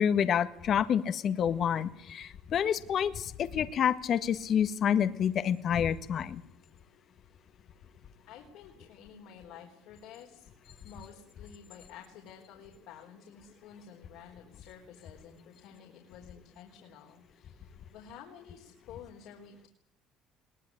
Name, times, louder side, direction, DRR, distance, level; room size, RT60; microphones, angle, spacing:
voice 1, 0.0-6.4, left 8 dB, 50° left, 11 dB, 1.6 m, -28 dB
voice 2, 8.3-10.5 10.8-19.7, left 7 dB, 75° left, 1 dB, 4.2 m, -51 dB
22.0 x 18.5 x 10.0 m, 0.75 s
supercardioid pair, 95°, 0 cm